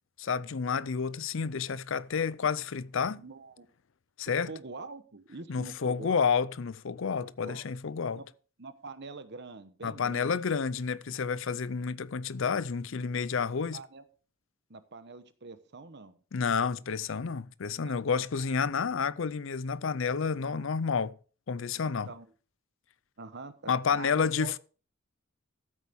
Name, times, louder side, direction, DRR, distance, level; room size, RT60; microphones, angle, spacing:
voice 1, 0.2-3.2 4.2-4.5 5.5-8.2 9.8-13.8 16.3-21.1 21.5-22.1 23.7-24.6, left 6 dB, 65° left, 0.5 m, -30 dB
voice 2, 3.2-3.7 4.3-6.2 7.2-7.6 8.1-8.3 8.6-10.4 13.7-14.0 14.7-16.2 17.8-18.2 20.4-20.6 22.1-22.3 23.2-24.5, right 3 dB, 55° right, 1.0 m, -45 dB
14.0 x 8.2 x 3.6 m
head